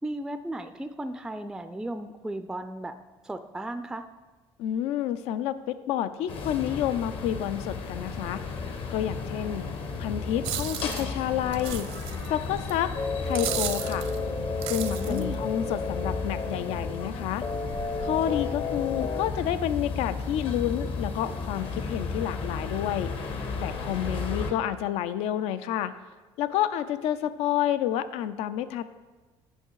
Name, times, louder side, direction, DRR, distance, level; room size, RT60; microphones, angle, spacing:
voice 1, 0.0-2.9 3.2-4.0 14.9-15.4, right 1 dB, 5° right, 9 dB, 0.3 m, -35 dB
voice 2, 4.6-8.4 8.9-9.6 10.0-11.9 12.3-12.9 13.2-14.1 14.7-17.4 18.0-23.1 23.6-25.9 26.4-28.8, left 11 dB, 80° left, 14 dB, 0.4 m, -29 dB
sound 1, 6.3-24.5, left 4 dB, 55° left, 1.0 m, -34 dB
sound 2, 10.4-11.0 11.5-12.3 12.7-12.8 13.3-14.2 14.6-15.3, right 11 dB, 75° right, 0.7 m, -34 dB
sound 3, 13.0-19.3, left 3 dB, 40° left, 0.7 m, -33 dB
9.0 x 5.7 x 4.7 m, 1.2 s
cardioid pair, 115°, 11 cm